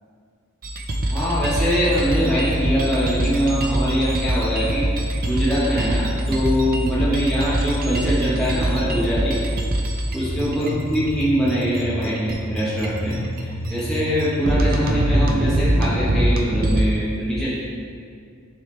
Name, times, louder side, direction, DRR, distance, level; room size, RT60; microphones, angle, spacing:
sound 1, 0.6-16.8, right 1 dB, 45° right, 0.6 m, -24 dB
voice 1, 1.1-9.4 10.1-17.5, equal, ahead, -11 dB, 1.3 m, -23 dB
10.0 x 3.6 x 3.3 m, 2.2 s
head